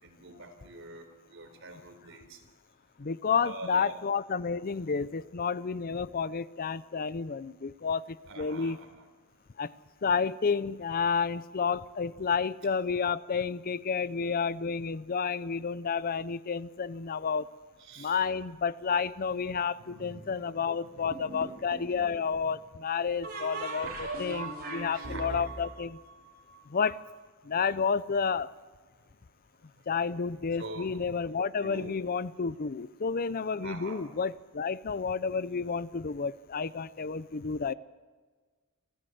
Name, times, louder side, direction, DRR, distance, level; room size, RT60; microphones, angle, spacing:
voice 1, 0.0-2.4 3.4-4.0 8.3-9.0 17.8-18.2 19.3-22.6 23.3-23.6 24.9-25.4 30.6-30.9 31.6-31.9 33.6-34.0, right 2 dB, 65° right, 4.0 m, -46 dB
voice 2, 3.0-8.8 9.6-9.7 10.0-17.5 18.0-26.0 26.7-26.9 27.5-28.5 29.9-37.7, left 5 dB, 45° left, 0.5 m, -30 dB
sound 1, 21.1-21.9 23.2-26.9, right 2 dB, 50° right, 5.5 m, -39 dB
27.5 x 14.5 x 7.9 m
head